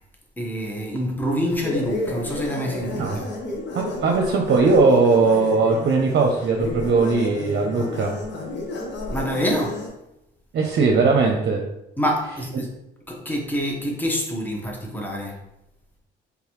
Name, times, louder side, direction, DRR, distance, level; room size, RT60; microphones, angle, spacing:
voice 1, 0.4-3.3 9.1-9.9 12.0-12.7 13.1-15.4, equal, 10° left, 1.0 m, -26 dB
sound 1, 1.5-9.9, left 2 dB, 65° left, 1.0 m, -32 dB
voice 2, 3.7-8.1 10.5-11.6, right 4 dB, 60° right, 0.7 m, -19 dB
3.9 x 3.4 x 3.0 m
cardioid pair, 90°, 20 cm